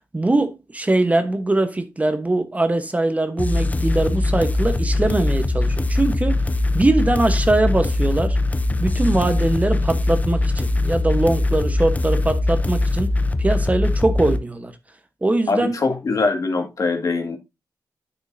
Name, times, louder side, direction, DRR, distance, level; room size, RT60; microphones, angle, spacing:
voice 1, 0.1-6.4 6.7-8.4 8.8-13.1 13.4-14.8 15.2-15.8, right 2 dB, 20° right, 1.1 m, -21 dB
sound 1, 3.4-14.4, left 2 dB, 25° left, 0.7 m, -21 dB
voice 2, 15.5-17.4, left 3 dB, 60° left, 1.9 m, -22 dB
9.4 x 6.3 x 2.7 m
cardioid pair, 80°, 7 cm